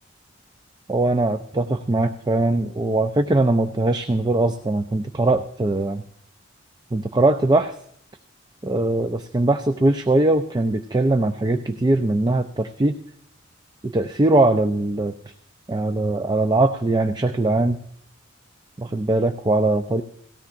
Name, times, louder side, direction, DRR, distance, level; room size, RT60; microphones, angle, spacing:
voice 1, 0.9-6.0 6.9-7.8 8.6-12.9 13.8-15.1 15.7-17.8 18.8-20.0, right 2 dB, 20° right, 7 dB, 0.4 m, -21 dB
18.0 x 16.0 x 2.5 m, 0.66 s
head